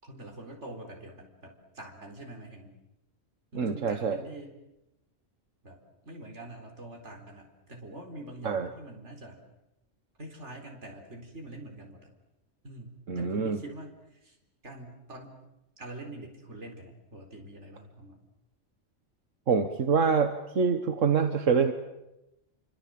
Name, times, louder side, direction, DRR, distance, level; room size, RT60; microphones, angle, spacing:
voice 1, 0.0-2.7 3.5-4.5 5.6-9.4 10.2-12.1 12.6-14.4 14.6-15.4 15.8-18.2, right 1 dB, 65° right, 2 dB, 4.5 m, -45 dB
voice 2, 3.5-4.2 8.4-8.7 13.1-13.6 19.5-21.7, right 5 dB, 85° right, 7 dB, 1.8 m, -25 dB
30.0 x 25.0 x 7.7 m, 0.93 s
omnidirectional pair, 1.3 m